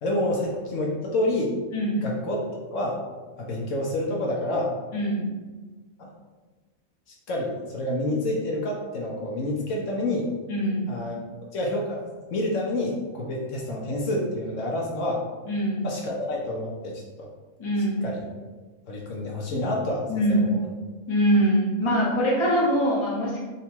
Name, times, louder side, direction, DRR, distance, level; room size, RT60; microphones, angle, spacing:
voice 1, 0.0-1.5 2.0-3.0 3.4-4.7 6.0-6.1 7.3-10.3 10.9-11.2 11.5-12.0 12.3-15.2 15.8-17.3 18.0-18.2 18.9-20.7, left 1 dB, 70° left, -2 dB, 1.0 m, -28 dB
voice 2, 1.7-2.0 4.9-5.3 10.5-10.9 15.4-15.9 17.6-18.1 20.1-20.5 21.1-23.4, equal, 25° left, -5 dB, 0.8 m, -23 dB
3.7 x 2.2 x 4.3 m, 1.3 s
omnidirectional pair, 1.4 m